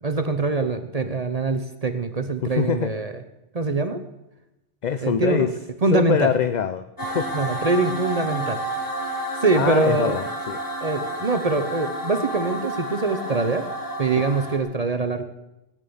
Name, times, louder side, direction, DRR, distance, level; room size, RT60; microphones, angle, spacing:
voice 1, 0.0-3.1 3.5-4.0 5.0-5.5 5.8-6.3 7.3-8.6 9.4-10.2 10.8-13.7 14.0-15.2, right 3 dB, 35° right, 9 dB, 0.9 m, -23 dB
voice 2, 2.4-2.9 4.8-5.5 5.9-7.3 9.6-10.6, left 8 dB, 50° left, 12 dB, 0.6 m, -24 dB
sound 1, 7.0-14.6, right 1 dB, 15° left, 2.3 m, -30 dB
16.5 x 9.0 x 7.0 m, 0.93 s
omnidirectional pair, 1.2 m